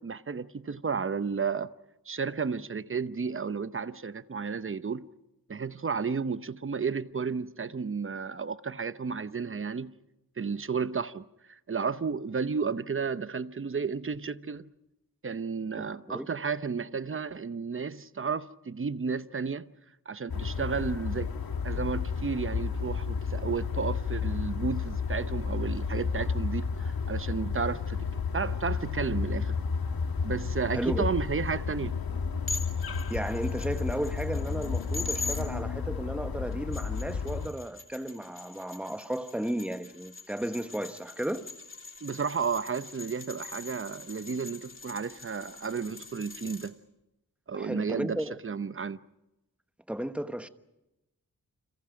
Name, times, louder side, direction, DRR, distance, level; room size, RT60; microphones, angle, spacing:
voice 1, 0.0-1.7 2.1-5.1 5.5-9.9 10.4-14.7 15.2-19.7 20.1-21.3 21.6-29.6 30.2-32.0 42.0-46.7 47.5-49.0, right 5 dB, 35° right, 0.8 m, -32 dB
sound 1, 20.3-37.5, left 5 dB, 80° left, 1.6 m, -32 dB
voice 2, 30.7-31.1 33.1-41.5 47.5-48.3 49.9-50.5, right 1 dB, 5° right, 1.2 m, -34 dB
sound 2, 32.5-35.4 36.5-46.7, left 3 dB, 35° left, 3.1 m, -42 dB
29.5 x 26.5 x 5.1 m
wide cardioid pair, 100°, 36 cm